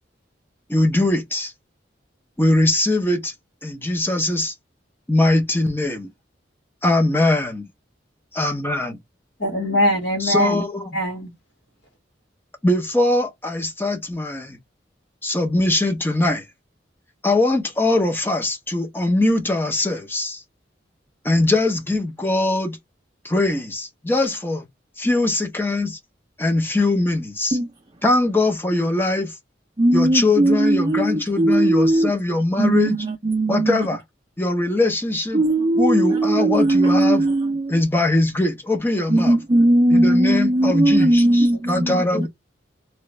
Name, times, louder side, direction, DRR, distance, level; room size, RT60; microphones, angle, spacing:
voice 1, 0.7-1.5 2.4-3.3 3.6-4.5 5.1-6.1 6.8-7.7 8.4-9.0 10.2-10.9 12.6-14.6 15.2-16.4 17.2-20.4 21.2-22.8 23.2-24.6 25.0-26.0 26.4-27.6 28.0-29.3 29.9-33.0 33.5-34.0 34.4-35.4 35.8-37.3 37.7-39.4 39.9-42.3, left 2 dB, 10° left, 0.7 m, -21 dB
voice 2, 9.4-10.6 10.9-11.3 41.2-41.8 42.1-42.3, equal, 65° left, 1.8 m, -23 dB
voice 3, 29.8-32.1 32.6-33.9 35.3-37.8 39.1-42.3, right 1 dB, 25° right, 0.5 m, -18 dB
3.0 x 2.4 x 3.1 m
head